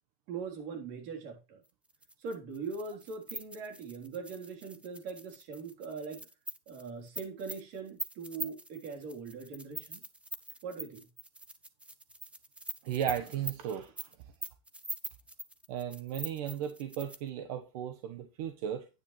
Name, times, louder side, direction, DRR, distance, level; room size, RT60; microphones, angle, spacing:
voice 1, 0.3-1.6 2.2-6.3 6.7-10.0 10.6-11.0, right 5 dB, 65° right, 3.5 m, -41 dB
sound 1, 1.9-17.3, right 1 dB, 5° right, 0.9 m, -43 dB
voice 2, 12.8-13.9 15.7-18.9, right 9 dB, 85° right, 1.2 m, -35 dB
9.7 x 9.0 x 3.2 m
supercardioid pair, 140°, 19 cm